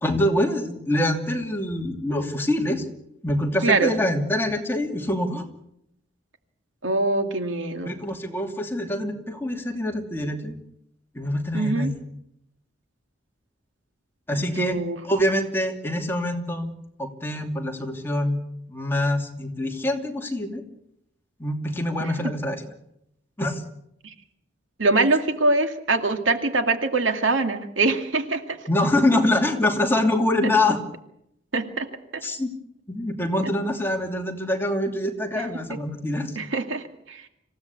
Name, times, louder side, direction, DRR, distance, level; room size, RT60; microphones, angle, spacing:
voice 1, 0.0-2.8 3.2-5.5 7.8-10.5 11.1-12.0 14.3-16.7 17.0-18.4 18.7-20.6 21.4-22.6 23.4-23.6 28.7-30.8 32.2-32.5 32.9-36.4, left 1 dB, 10° left, 2 dB, 2.8 m, -25 dB
voice 2, 3.6-3.9 6.8-7.9 11.5-11.9 14.6-15.0 22.0-22.1 24.0-24.1 24.8-28.6 30.4-30.5 31.5-31.9 32.1-32.2 35.3-35.4 36.4-37.2, right 3 dB, 80° right, 6 dB, 2.4 m, -23 dB
26.5 x 16.5 x 8.4 m, 0.79 s
head